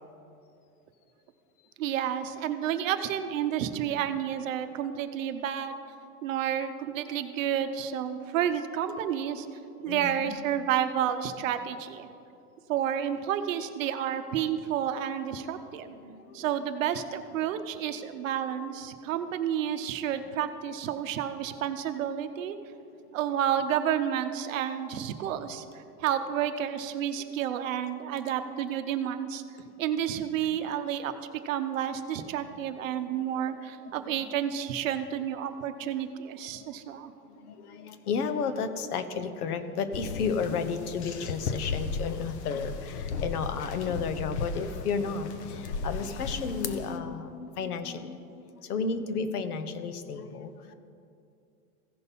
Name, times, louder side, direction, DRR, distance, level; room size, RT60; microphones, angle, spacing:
voice 1, 1.8-5.8 6.2-9.5 9.8-12.1 12.7-15.9 16.3-22.6 23.1-25.6 26.0-29.4 29.8-31.2 31.4-37.1, right 9 dB, 55° right, 8 dB, 0.8 m, -30 dB
voice 2, 9.9-10.4 15.9-16.5 32.7-33.3 33.8-34.2 36.5-36.7 37.2-48.2 48.5-50.7, left 5 dB, 70° left, 10 dB, 1.0 m, -33 dB
sound 1, 39.9-47.0, left 4 dB, 45° left, 0.7 m, -36 dB
16.0 x 5.3 x 4.2 m, 2.5 s
supercardioid pair, 160°, 47 cm